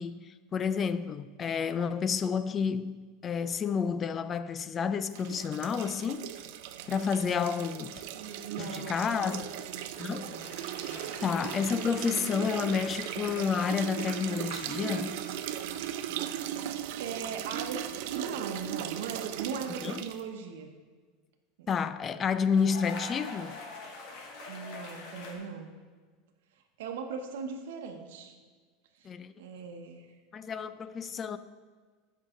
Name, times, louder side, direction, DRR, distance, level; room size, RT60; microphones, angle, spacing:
voice 1, 0.0-6.3 6.9-8.0 8.6-9.5 10.0-10.3 11.2-15.1 19.8-20.0 21.7-23.6 29.0-29.3 30.3-31.4, left 6 dB, 25° left, 0.4 m, -30 dB
sound 1, 5.1-20.2, right 11 dB, 65° right, 0.5 m, -38 dB
voice 2, 8.1-9.5 10.0-10.5 10.8-11.1 15.9-16.0 17.0-17.8 18.1-20.7 21.6-21.7 24.5-25.7 26.8-28.4 28.9-29.1 29.4-30.1, right 6 dB, 90° right, 0.9 m, -39 dB
sound 2, 10.3-15.8 16.1-16.5 18.4-18.6 22.5-25.3, left 3 dB, 55° left, 1.6 m, -45 dB
14.0 x 5.6 x 3.7 m
supercardioid pair, 150°, 0 cm